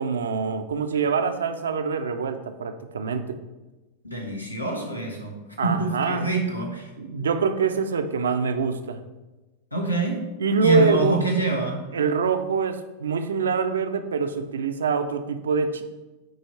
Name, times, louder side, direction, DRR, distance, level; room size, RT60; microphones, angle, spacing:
voice 1, 0.0-3.3 5.6-6.3 7.0-9.0 10.4-11.2 11.9-15.8, right 5 dB, 65° right, 8 dB, 0.5 m, -25 dB
voice 2, 4.0-5.4 5.6-6.9 9.7-10.3 10.6-11.9, right 3 dB, 85° left, 1 dB, 1.1 m, -26 dB
8.7 x 3.1 x 4.2 m, 1.1 s
figure-of-eight pair, 90°, 0 cm